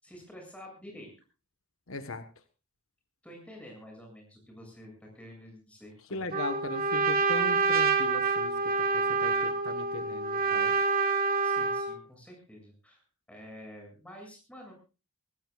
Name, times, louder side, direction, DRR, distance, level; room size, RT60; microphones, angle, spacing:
voice 1, 0.0-1.1 3.2-6.2 11.1-13.0 13.3-14.7, equal, 5° left, 1 dB, 7.5 m, -49 dB
voice 2, 1.9-2.2 6.1-10.7, left 2 dB, 65° left, 9 dB, 1.3 m, -38 dB
Trumpet, 6.3-12.0, right 4 dB, 40° right, 1.7 m, -27 dB
25.0 x 15.5 x 2.4 m, 0.32 s
head